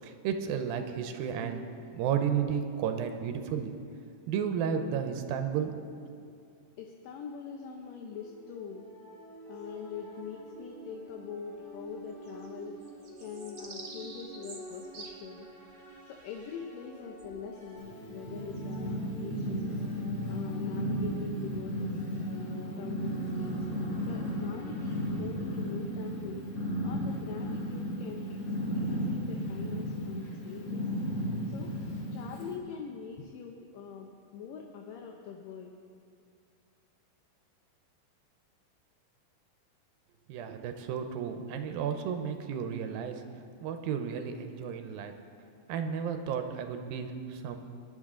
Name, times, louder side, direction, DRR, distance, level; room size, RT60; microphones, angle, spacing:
voice 1, 0.0-1.6 1.9-3.7 4.3-5.7 40.3-45.1 45.7-47.6, right 7 dB, 90° right, 6 dB, 2.6 m, -33 dB
voice 2, 6.8-8.9 9.5-12.8 13.2-15.5 16.1-19.8 20.3-21.9 22.2-23.6 24.1-26.4 26.8-28.2 28.6-30.8 31.5-31.7 32.1-35.7, left 6 dB, 75° left, 1 dB, 2.4 m, -43 dB
sound 1, 8.1-25.3, right 1 dB, 5° left, 1.6 m, -49 dB
sound 2, 9.5-10.6 11.1-11.2 11.4-22.1, right 3 dB, 55° right, 0.9 m, -52 dB
Purr, 17.8-32.6, equal, 35° left, 2.7 m, -34 dB
20.5 x 10.0 x 3.8 m, 2.4 s
omnidirectional pair, 4.1 m